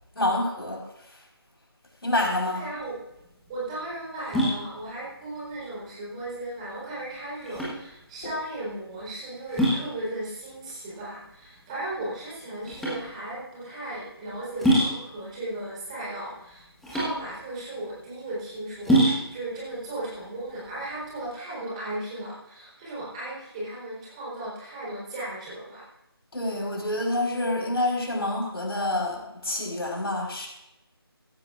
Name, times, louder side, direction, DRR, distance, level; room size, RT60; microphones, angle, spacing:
voice 1, 0.1-0.8 2.0-2.6 26.3-30.5, left 1 dB, 70° left, -1 dB, 4.6 m, -27 dB
voice 2, 2.5-3.0 3.5-25.9, right 1 dB, 15° right, -7 dB, 4.0 m, -36 dB
sound 1, 2.7-21.3, right 1 dB, ahead, 1.4 m, -29 dB
16.5 x 13.5 x 2.5 m, 0.91 s
figure-of-eight pair, 160°, 13 cm